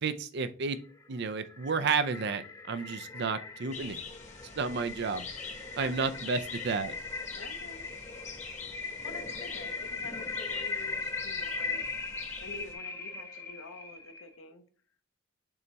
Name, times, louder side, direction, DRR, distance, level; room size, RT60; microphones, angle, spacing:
voice 1, 0.0-0.8 1.1-2.4 2.7-4.0 4.6-5.2 5.8-6.4 6.6-7.0, right 5 dB, 55° right, 12 dB, 0.5 m, -31 dB
sound 1, 0.9-14.3, left 4 dB, 15° left, 0.7 m, -39 dB
sound 2, 3.7-12.7, left 5 dB, 35° left, 1.0 m, -45 dB
voice 2, 5.8-6.3 7.3-7.9 8.8-14.6, left 3 dB, 85° left, 7 dB, 0.9 m, -48 dB
6.9 x 3.4 x 4.0 m, 0.41 s
head